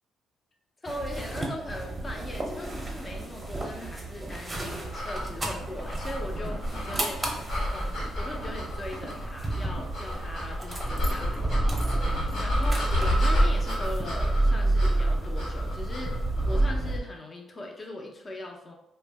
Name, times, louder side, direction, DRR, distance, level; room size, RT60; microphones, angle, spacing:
voice 1, 0.8-7.2 7.6-18.7, left 1 dB, 30° left, 1 dB, 0.6 m, -40 dB
sound 1, 0.9-17.0, right 2 dB, 20° right, 0.6 m, -29 dB
sound 2, 4.9-16.8, left 1 dB, 65° left, 1.0 m, -32 dB
2.5 x 2.1 x 3.3 m, 0.83 s
cardioid pair, 90°, 0 cm